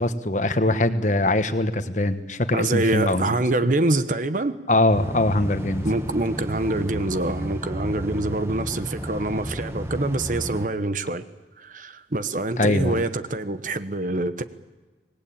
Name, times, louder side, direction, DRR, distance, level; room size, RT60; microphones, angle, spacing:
voice 1, 0.0-3.3 4.7-5.9 12.6-13.0, left 1 dB, 40° left, 1.3 m, -22 dB
voice 2, 2.5-4.6 5.8-11.2 11.6-14.4, right 2 dB, 45° right, 1.1 m, -25 dB
sound 1, 4.9-10.7, equal, 15° right, 1.4 m, -32 dB
25.5 x 20.0 x 8.7 m
head